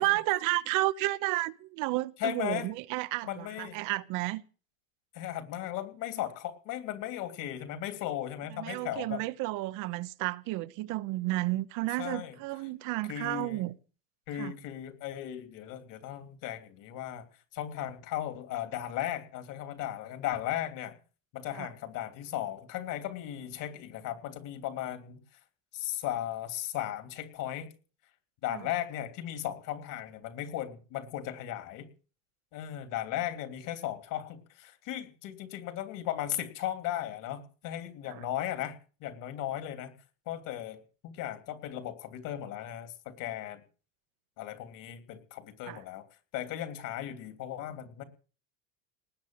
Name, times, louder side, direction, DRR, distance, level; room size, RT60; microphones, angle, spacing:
voice 1, 0.0-4.4 8.6-13.7 14.4-14.5 21.6-21.7 45.7-45.8, right 19 dB, 50° right, 1.0 m, -32 dB
voice 2, 2.2-2.7 3.2-3.8 5.1-9.2 12.0-12.7 13.1-13.7 14.3-17.3 17.5-20.9 21.3-25.4 25.7-27.7 28.4-31.9 32.5-40.0 40.3-43.6 44.4-46.0 46.3-48.0, left 12 dB, 50° left, 3.0 m, -36 dB
19.5 x 8.2 x 7.7 m
supercardioid pair, 140°, 39 cm